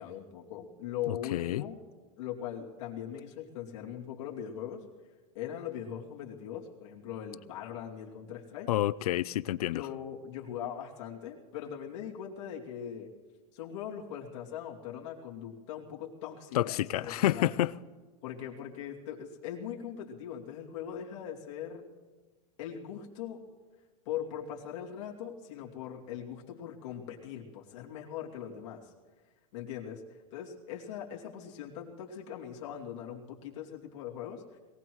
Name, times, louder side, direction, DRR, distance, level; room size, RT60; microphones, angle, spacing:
voice 1, 0.0-1.8 2.2-4.8 5.3-8.7 9.7-13.1 13.5-17.5 18.2-21.9 22.6-23.4 24.1-28.9 29.5-30.0 30.3-34.6, left 9 dB, 45° left, 2.6 m, -40 dB
voice 2, 1.1-1.6 8.7-9.8 16.5-17.7, left 14 dB, 70° left, 0.5 m, -29 dB
22.0 x 17.5 x 3.1 m
supercardioid pair, 170°, 20 cm